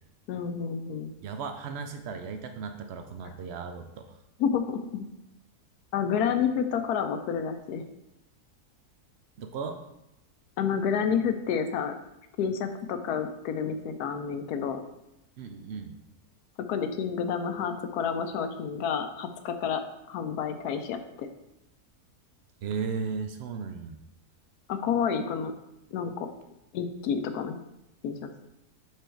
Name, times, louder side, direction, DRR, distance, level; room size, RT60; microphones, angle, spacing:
voice 1, 0.3-1.1 4.4-5.1 5.9-7.8 10.6-11.9 12.4-14.8 16.7-19.8 20.1-21.3 24.7-25.5 25.9-26.3 26.7-27.6 28.0-28.3, left 7 dB, 75° left, 7 dB, 1.1 m, -29 dB
voice 2, 1.2-4.2 9.4-9.8 15.4-16.0 22.6-24.0, right 5 dB, 85° right, 6 dB, 0.5 m, -36 dB
5.1 x 4.7 x 4.4 m, 0.87 s
omnidirectional pair, 1.7 m